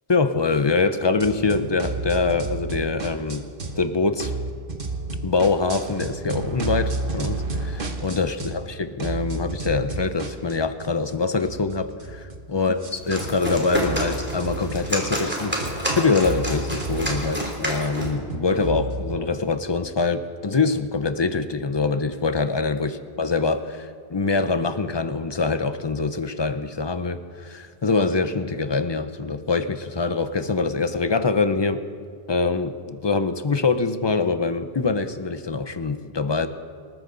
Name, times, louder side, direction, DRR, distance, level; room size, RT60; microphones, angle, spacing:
voice 1, 0.1-3.5 3.8-4.3 5.2-8.6 9.0-12.8 13.1-22.9 23.2-31.8 32.3-36.5, left 4 dB, 30° left, 10 dB, 0.7 m, -24 dB
sound 1, 1.2-3.9 4.2-8.7 9.0-19.2, right 3 dB, 60° right, 1.4 m, -32 dB
sound 2, 12.9-18.2, equal, 10° right, 3.0 m, -29 dB
26.5 x 13.5 x 4.0 m, 2.1 s
omnidirectional pair, 1.1 m